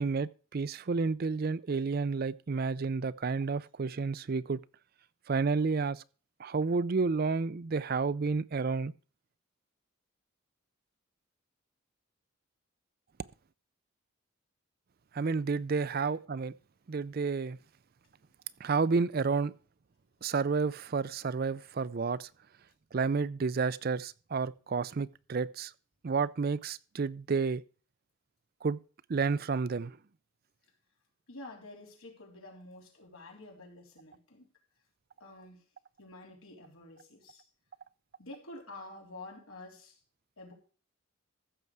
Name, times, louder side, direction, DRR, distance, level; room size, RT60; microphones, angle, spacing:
voice 1, 0.0-4.6 5.3-6.0 6.4-8.9 15.1-16.5 16.9-17.6 18.6-19.5 20.2-22.3 22.9-25.7 26.0-27.6 28.6-28.8 29.1-30.0, right 4 dB, 45° right, 0.4 m, -30 dB
voice 2, 31.3-34.5 35.2-35.6 36.0-37.5 38.2-40.0 40.4-40.5, left 2 dB, 85° left, 3.6 m, -49 dB
15.0 x 6.8 x 4.7 m
head